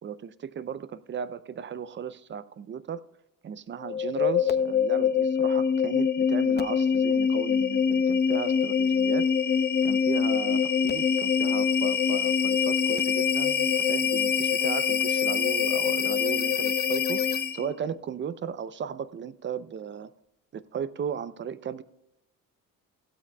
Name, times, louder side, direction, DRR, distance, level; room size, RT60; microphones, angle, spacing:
voice 1, 0.0-3.0 3.4-9.3 9.8-20.1 20.5-21.8, right 7 dB, 35° right, 16 dB, 0.6 m, -36 dB
sound 1, 3.8-17.7, left 7 dB, 30° left, 0.7 m, -24 dB
16.0 x 12.5 x 2.3 m, 0.87 s
cardioid pair, 115°, 33 cm